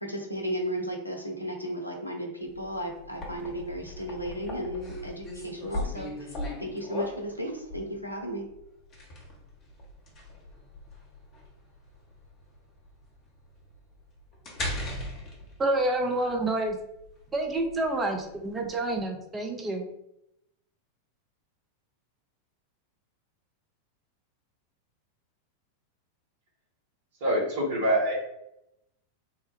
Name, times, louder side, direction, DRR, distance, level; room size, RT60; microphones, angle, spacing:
voice 1, 0.0-6.3 6.6-8.5, equal, 85° left, 2 dB, 0.6 m, -34 dB
sound 1, 2.5-19.0, left 1 dB, 35° left, 1.0 m, -39 dB
voice 2, 15.6-16.8 17.3-19.9, right 2 dB, 15° right, 3 dB, 0.6 m, -28 dB
voice 3, 27.2-28.1, right 1 dB, 55° right, -3 dB, 1.4 m, -25 dB
3.3 x 2.2 x 3.2 m, 0.82 s
figure-of-eight pair, 90°, 0 cm